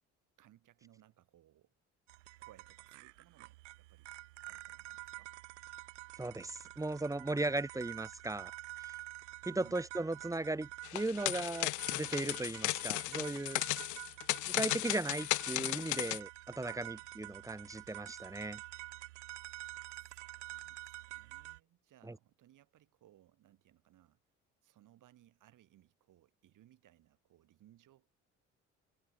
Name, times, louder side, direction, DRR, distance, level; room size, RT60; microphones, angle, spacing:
voice 1, 0.4-1.7 2.4-4.1 4.5-5.3 9.5-9.8 13.7-14.4 16.5-17.2 19.9-24.2 24.6-28.1, right 13 dB, 60° right, 6.5 m, -65 dB
sound 1, 2.1-21.6, right 19 dB, 75° right, 1.3 m, -49 dB
voice 2, 6.2-8.5 8.8-8.9 9.4-13.6 14.5-18.6 22.1-22.2, right 2 dB, 10° right, 1.1 m, -37 dB
sound 2, 10.8-16.2, left 22 dB, 55° left, 0.6 m, -35 dB
figure-of-eight pair, 50°, 36 cm